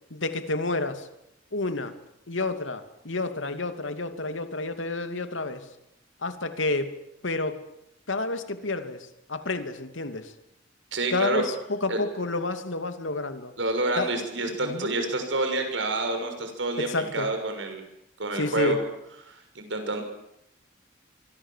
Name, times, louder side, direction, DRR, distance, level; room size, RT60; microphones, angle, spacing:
voice 1, 0.1-1.1 1.5-2.0 2.3-5.7 6.2-7.0 7.2-7.6 8.1-10.3 11.1-13.5 14.0-14.1 14.6-14.9 16.8-17.3 18.3-18.8, left 2 dB, 85° left, 9 dB, 2.7 m, -30 dB
voice 2, 10.9-11.4 11.9-12.0 13.6-17.8 18.2-18.8 19.3-20.0, right 2 dB, 75° right, 6 dB, 6.6 m, -28 dB
25.5 x 25.0 x 7.5 m, 0.82 s
head